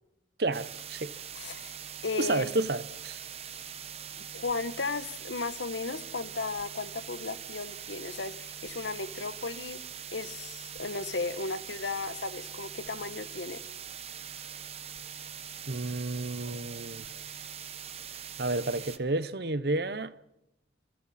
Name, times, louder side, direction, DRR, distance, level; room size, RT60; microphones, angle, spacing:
voice 1, 0.4-1.1 2.2-3.2 15.7-17.0 18.4-20.1, right 2 dB, 55° right, 0.9 m, -31 dB
sound 1, 0.5-19.0, right 8 dB, 35° right, 1.1 m, -43 dB
voice 2, 1.3-1.8 2.0-2.7 4.2-9.8 10.1-13.6, left 4 dB, 80° left, 1.1 m, -35 dB
27.5 x 26.5 x 4.3 m
head